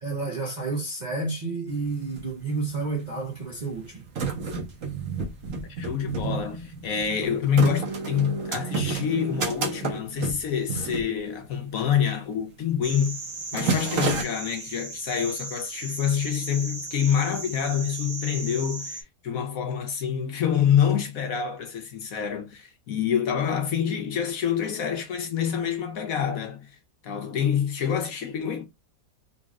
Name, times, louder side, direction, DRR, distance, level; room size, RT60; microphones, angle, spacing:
voice 1, 0.0-4.0, right 3 dB, 40° right, 0.7 m, -30 dB
sound 1, 1.7-1.8 2.0-2.8 3.5-11.8 12.1-12.3 12.7-13.0 13.3-14.2, right 5 dB, 55° right, 1.4 m, -30 dB
voice 2, 5.7-13.2 13.5-26.8 27.0-28.7, left 8 dB, 60° left, 1.0 m, -26 dB
sound 2, 12.8-19.0, right 3 dB, 80° right, 0.3 m, -37 dB
4.0 x 3.2 x 2.4 m
omnidirectional pair, 1.8 m